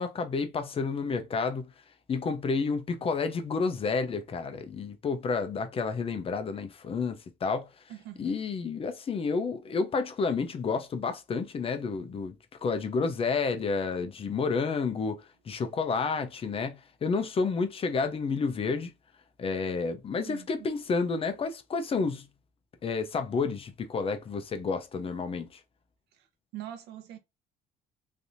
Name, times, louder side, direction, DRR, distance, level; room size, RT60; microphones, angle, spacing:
voice 1, 0.0-1.7 2.1-7.7 8.2-18.9 19.4-22.3 22.8-25.6, left 4 dB, 35° left, 0.6 m, -30 dB
voice 2, 7.9-8.3 20.2-20.7 26.1-26.3 26.5-27.2, right 12 dB, 85° right, 0.8 m, -43 dB
3.3 x 2.7 x 2.6 m
cardioid pair, 110°, 17 cm